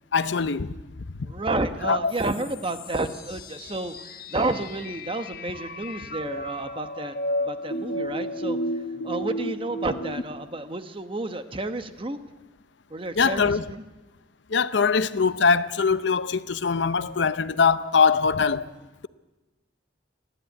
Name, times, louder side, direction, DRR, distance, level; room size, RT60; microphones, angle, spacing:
voice 1, 0.1-0.7 1.8-2.1 13.2-13.6 14.5-18.7, left 5 dB, 70° left, 0.7 m, -22 dB
voice 2, 1.3-3.9 4.3-7.1 7.4-8.6 9.0-12.2 12.9-13.8, right 2 dB, 30° right, 1.1 m, -30 dB
sound 1, 2.1-10.2, equal, 55° left, 1.4 m, -33 dB
29.0 x 11.0 x 9.3 m
head